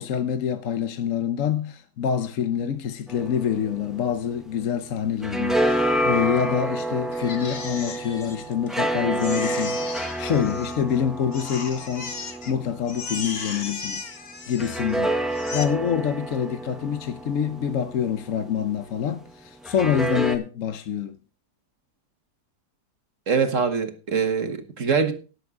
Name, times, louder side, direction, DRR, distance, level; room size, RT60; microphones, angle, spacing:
voice 1, 0.0-14.1 14.5-21.2, left 8 dB, 60° left, 1.1 m, -26 dB
sound 1, 3.1-4.8 5.0-13.7 14.6-18.7 19.6-20.4, right 1 dB, ahead, 1.0 m, -29 dB
Crying sobbing, 7.1-8.8 9.2-11.0 11.3-12.5 12.9-15.0 15.3-15.6, left 4 dB, 40° left, 1.3 m, -36 dB
voice 2, 23.3-25.1, right 5 dB, 50° right, 1.7 m, -23 dB
18.0 x 7.2 x 3.7 m
omnidirectional pair, 1.7 m